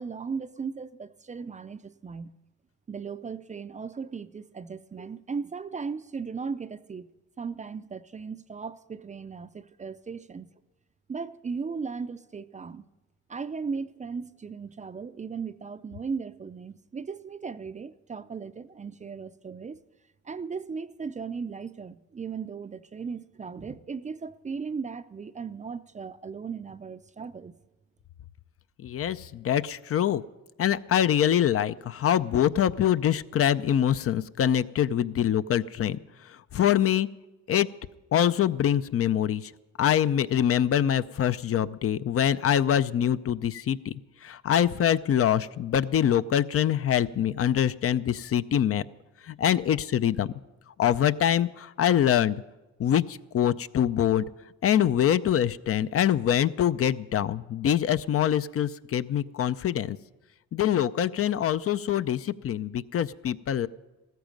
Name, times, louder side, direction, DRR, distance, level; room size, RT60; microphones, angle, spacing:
voice 1, 0.0-2.3 2.9-7.1 7.4-10.5 11.1-12.8 13.3-19.8 20.2-27.5, right 5 dB, 25° right, 0.5 m, -37 dB
voice 2, 28.8-30.2 30.6-36.0 36.3-37.1 37.5-37.7 38.1-39.5 39.8-48.8 49.2-50.3 50.8-52.4 52.8-54.2 54.6-60.0 60.5-63.7, left 10 dB, 50° left, 0.5 m, -24 dB
15.5 x 14.0 x 5.2 m
cardioid pair, 90°, 30 cm